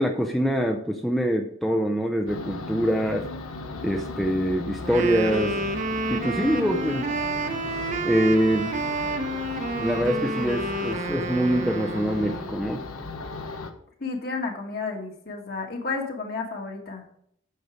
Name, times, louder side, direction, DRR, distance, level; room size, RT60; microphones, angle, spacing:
voice 1, 0.0-3.3 3.8-5.6 6.1-7.1 8.0-8.9 9.7-12.8, equal, ahead, 2 dB, 0.5 m, -24 dB
sound 1, 2.3-13.7, left 3 dB, 85° left, 1.1 m, -36 dB
Wind instrument woodwind instrument, 4.8-12.5, right 2 dB, 35° right, 0.9 m, -30 dB
voice 2, 14.0-17.0, left 4 dB, 45° left, 2 dB, 1.8 m, -31 dB
9.3 x 6.6 x 5.0 m, 0.68 s
head